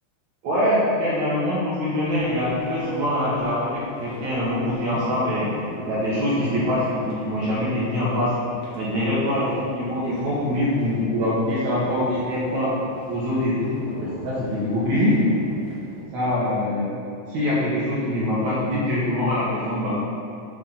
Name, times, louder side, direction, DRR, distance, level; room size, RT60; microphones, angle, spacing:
voice 1, 0.4-8.3 8.8-12.8 13.1-15.2 16.1-16.9 17.3-19.9, left 1 dB, 65° right, -8 dB, 1.9 m, -24 dB
sound 1, 2.0-16.0, left 1 dB, 55° left, 1.2 m, -41 dB
8.9 x 3.8 x 5.6 m, 2.6 s
omnidirectional pair, 4.8 m